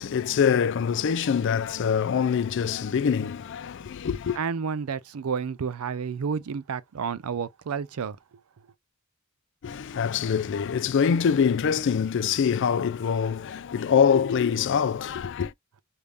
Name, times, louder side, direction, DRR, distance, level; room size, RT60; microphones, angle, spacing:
voice 1, 0.0-4.4 9.6-15.5, left 7 dB, 55° left, 0.4 m, -24 dB
voice 2, 4.4-8.2, right 6 dB, 75° right, 0.4 m, -30 dB
3.5 x 2.6 x 3.1 m
head